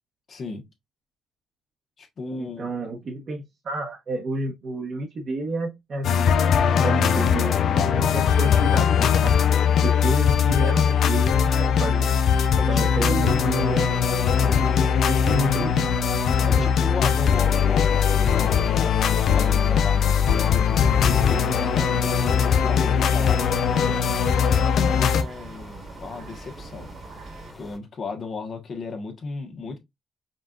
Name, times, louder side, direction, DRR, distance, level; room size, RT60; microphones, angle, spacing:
voice 1, 0.3-0.7 2.0-2.7 12.6-13.5 14.4-14.8 16.4-24.3 24.8-26.9 27.5-29.8, left 4 dB, 50° left, 1.2 m, -35 dB
voice 2, 2.4-6.4 6.7-9.4 9.8-12.1 12.7-13.9 15.1-15.9 16.6-16.7, right 2 dB, 50° right, 1.0 m, -30 dB
sound 1, 6.0-25.2, left 7 dB, 70° left, 0.5 m, -20 dB
sound 2, 11.9-27.5, right 4 dB, 75° right, 1.4 m, -43 dB
sound 3, 17.9-27.8, left 2 dB, 10° left, 1.5 m, -43 dB
5.2 x 2.5 x 2.4 m
cardioid pair, 90°, 0 cm